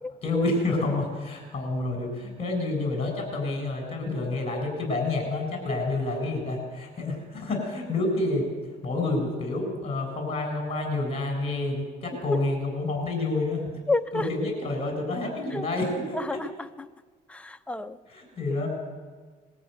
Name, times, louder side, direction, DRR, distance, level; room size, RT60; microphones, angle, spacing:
voice 1, 0.2-8.5 8.8-13.7 14.1-16.4 18.1-18.7, left 2 dB, 35° left, 3 dB, 7.2 m, -28 dB
voice 2, 13.9-14.3 15.5-15.6 16.1-16.5 16.8-16.9 17.3-18.0, left 2 dB, 5° left, 8 dB, 0.8 m, -29 dB
20.5 x 14.0 x 9.3 m, 1.4 s
cardioid pair, 110°, 17 cm